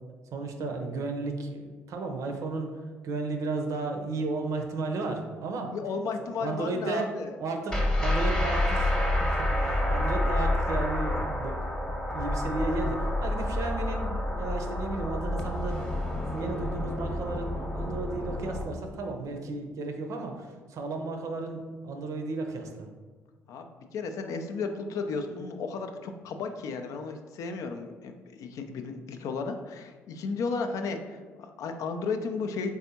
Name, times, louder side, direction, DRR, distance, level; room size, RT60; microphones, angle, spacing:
voice 1, 0.3-2.7 3.0-5.7 6.2-15.9 16.2-22.9, right 3 dB, 50° right, 4 dB, 0.6 m, -34 dB
voice 2, 5.7-7.4 23.5-32.7, left 4 dB, 55° left, 6 dB, 0.4 m, -34 dB
sound 1, 7.7-18.6, left 1 dB, 10° left, 0.9 m, -28 dB
4.0 x 3.5 x 2.8 m, 1.4 s
figure-of-eight pair, 50°, 7 cm